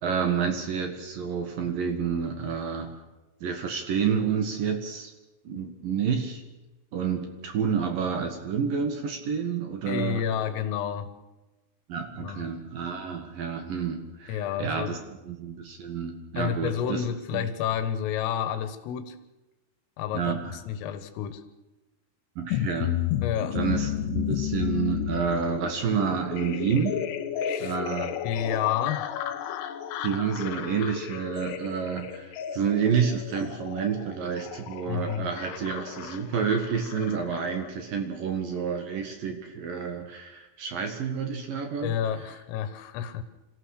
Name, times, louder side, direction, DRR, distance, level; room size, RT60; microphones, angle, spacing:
voice 1, 0.0-2.9 3.4-5.1 5.4-6.4 6.9-10.2 11.9-15.0 15.2-17.0 17.3-17.5 20.1-20.6 22.4-23.0 23.5-27.0 27.6-28.1 30.0-41.9, right 6 dB, 60° right, 5 dB, 2.8 m, -29 dB
voice 2, 9.9-11.1 12.2-12.5 14.3-15.0 16.4-19.2 20.0-21.4 23.2-23.6 27.4-27.8 28.2-29.1 34.9-35.3 41.8-43.2, left 9 dB, 85° left, 10 dB, 4.0 m, -30 dB
sound 1, 22.5-37.7, left 10 dB, 70° left, 2.8 m, -33 dB
26.0 x 15.5 x 6.6 m, 1.1 s
omnidirectional pair, 5.8 m